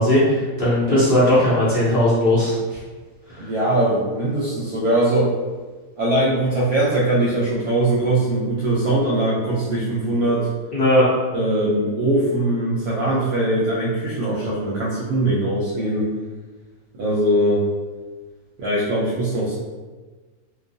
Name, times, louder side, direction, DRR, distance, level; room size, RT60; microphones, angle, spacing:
voice 1, 0.0-2.8 3.3-3.5 10.7-11.1, left 1 dB, 50° left, -9 dB, 0.7 m, -18 dB
voice 2, 3.4-5.3 6.0-10.5 11.3-16.1 17.0-17.6 18.6-19.5, right 1 dB, 70° right, -7 dB, 1.0 m, -21 dB
2.5 x 2.3 x 2.6 m, 1.3 s
omnidirectional pair, 1.7 m